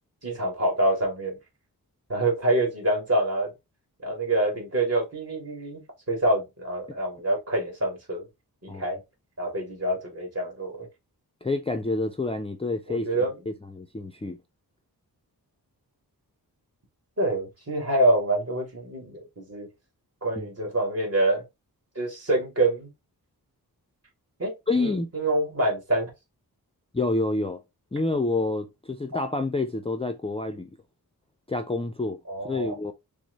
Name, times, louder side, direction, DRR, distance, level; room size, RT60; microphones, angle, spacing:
voice 1, 0.2-1.4 2.1-3.5 4.0-5.8 6.1-8.3 8.6-9.0 9.4-10.9 12.9-13.4 17.2-19.7 20.2-21.4 22.0-22.9 24.4-26.1 29.1-29.2 32.3-32.7, right 1 dB, 40° right, 2.3 m, -26 dB
voice 2, 11.4-13.1 13.5-14.4 20.4-20.5 24.7-25.1 26.9-27.6 27.9-30.7 31.5-32.2 32.4-32.9, left 2 dB, 15° left, 0.4 m, -28 dB
6.1 x 2.1 x 3.9 m
wide cardioid pair, 140°, 37 cm